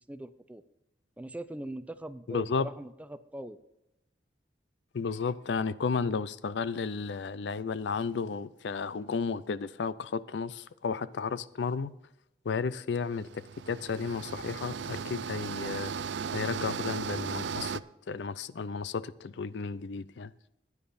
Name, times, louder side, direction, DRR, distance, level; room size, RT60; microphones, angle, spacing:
voice 1, 0.1-0.6 1.2-3.6, right 1 dB, 10° right, 0.4 m, -41 dB
voice 2, 2.3-2.7 4.9-11.9 12.4-15.9 16.3-17.8 18.1-20.3, left 5 dB, 85° left, 0.5 m, -33 dB
sound 1, 13.2-17.8, right 6 dB, 85° right, 0.4 m, -36 dB
15.5 x 9.8 x 2.6 m
head